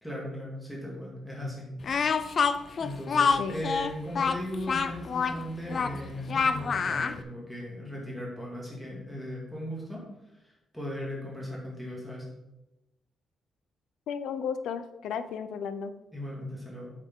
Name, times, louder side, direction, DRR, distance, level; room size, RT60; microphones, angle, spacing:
voice 1, 0.0-1.7 2.8-10.0 10.4-12.3 16.1-16.9, equal, 5° left, -4 dB, 2.1 m, -37 dB
Speech, 1.8-7.2, left 5 dB, 35° left, 0.4 m, -27 dB
voice 2, 14.1-15.9, left 7 dB, 90° left, 11 dB, 0.6 m, -34 dB
8.3 x 6.7 x 3.7 m, 0.96 s
wide cardioid pair, 175°, 0 cm